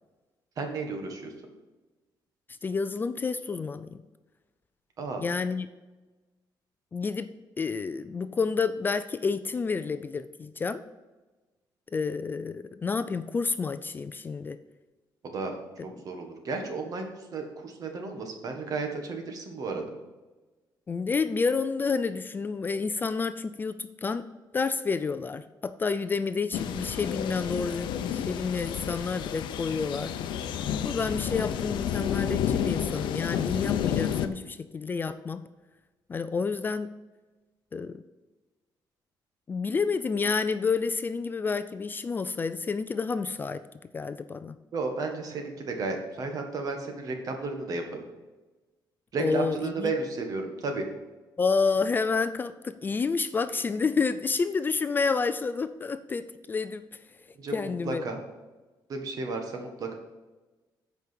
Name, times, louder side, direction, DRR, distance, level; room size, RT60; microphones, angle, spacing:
voice 1, 0.6-1.3 5.0-5.2 15.2-15.6 15.8-19.9 44.7-48.0 49.1-50.8 57.3-58.2 58.9-59.9, right 3 dB, 50° right, 4 dB, 1.6 m, -33 dB
voice 2, 2.6-4.0 5.2-5.7 6.9-7.3 7.6-10.8 11.9-14.6 20.9-24.3 24.5-30.1 30.8-35.4 36.1-36.9 37.7-38.0 39.5-43.6 43.9-44.6 49.2-49.9 51.4-56.8 57.5-58.0, left 4 dB, 25° left, 11 dB, 0.3 m, -29 dB
sound 1, 26.5-34.3, left 9 dB, 85° left, 0.6 m, -30 dB
8.2 x 5.2 x 6.1 m, 1.2 s
cardioid pair, 135°, 8 cm